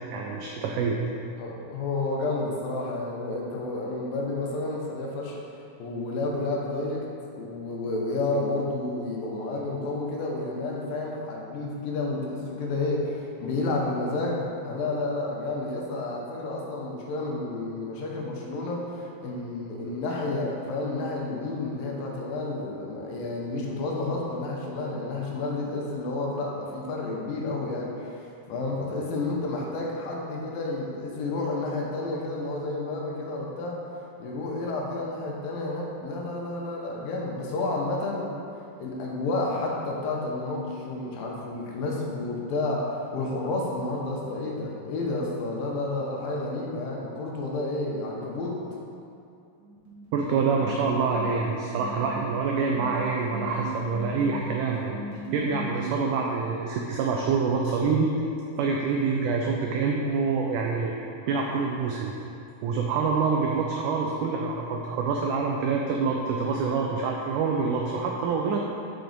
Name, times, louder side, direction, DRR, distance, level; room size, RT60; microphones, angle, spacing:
voice 1, 0.1-1.0 50.1-55.0 55.3-58.1 58.6-60.9 61.3-62.1 62.6-68.6, right 4 dB, 85° right, 0 dB, 1.8 m, -26 dB
voice 2, 1.4-5.4 5.8-7.1 7.3-28.2 28.5-33.8 34.2-38.3 38.8-42.9 43.1-48.6, left 2 dB, 80° left, -2 dB, 2.5 m, -30 dB
sound 1, 49.6-55.9, right 3 dB, 60° right, 2.8 m, -37 dB
6.0 x 5.0 x 3.9 m, 2.6 s
omnidirectional pair, 4.1 m